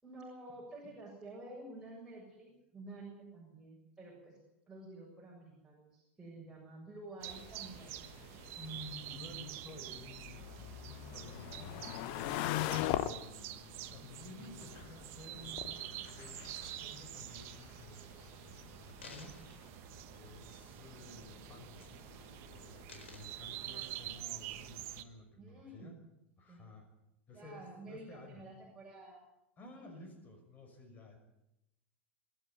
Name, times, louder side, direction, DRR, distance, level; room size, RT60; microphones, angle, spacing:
voice 1, 0.0-4.4 4.7-8.0 25.4-26.0 26.5-26.7 27.3-29.2 29.6-30.1, right 2 dB, 10° right, -5 dB, 7.1 m, -51 dB
sound 1, 7.2-25.0, right 13 dB, 45° right, 1.3 m, -47 dB
sound 2, 7.3-22.8, left 13 dB, 50° left, 1.1 m, -43 dB
voice 2, 8.6-13.1 13.9-19.4 20.1-22.0 22.5-26.0 26.4-26.9 27.3-28.4 29.6-31.2, left 2 dB, 25° left, 5 dB, 6.0 m, -53 dB
sound 3, 18.1-18.2 18.7-20.8 21.2-21.4 21.7-22.3 22.6-24.3 24.9-25.0, left 4 dB, 75° left, 4.3 m, -57 dB
26.0 x 11.5 x 9.3 m, 0.89 s
figure-of-eight pair, 90°, 6 cm